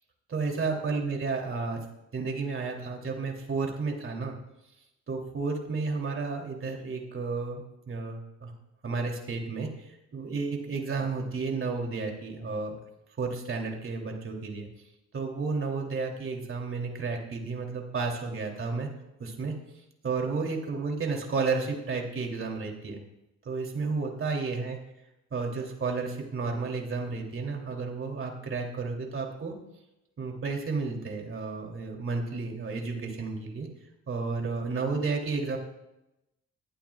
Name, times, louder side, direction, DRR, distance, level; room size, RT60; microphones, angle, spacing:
voice 1, 0.3-1.8 2.1-4.4 5.1-8.5 8.8-12.8 13.2-14.7 15.1-18.9 19.2-19.5 20.0-23.0 23.4-24.8 25.3-29.5 30.2-33.7 34.1-35.6, right 4 dB, 45° right, 1 dB, 3.0 m, -32 dB
20.0 x 12.0 x 2.4 m, 0.90 s
cardioid pair, 90°, 30 cm